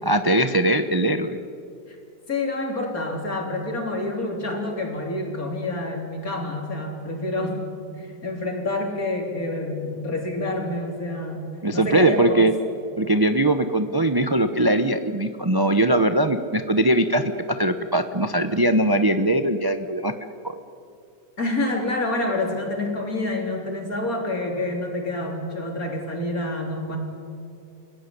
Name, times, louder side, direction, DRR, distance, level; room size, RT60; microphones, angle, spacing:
voice 1, 0.1-1.4 11.6-12.5 13.0-20.1 20.4-20.6, right 1 dB, 25° right, 8 dB, 0.5 m, -21 dB
voice 2, 2.3-7.6 8.0-11.4 11.7-12.5 21.4-27.0, left 2 dB, 50° left, 2 dB, 4.2 m, -28 dB
29.0 x 16.5 x 10.0 m, 2.5 s
omnidirectional pair, 2.0 m